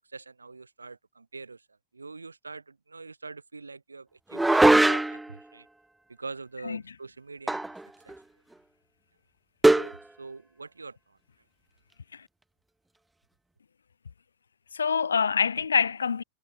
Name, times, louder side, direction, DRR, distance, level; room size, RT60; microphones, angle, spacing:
voice 1, 0.1-1.7 1.9-5.7 6.1-7.7 8.0-8.2 9.7-11.2, right 4 dB, 80° right, 3.9 m, -44 dB
sound 1, 4.3-5.3 7.5-8.2 9.6-10.0, right 2 dB, 5° right, 0.5 m, -20 dB
voice 2, 14.7-16.2, left 6 dB, 70° left, 0.4 m, -26 dB
figure-of-eight pair, 90°, 0 cm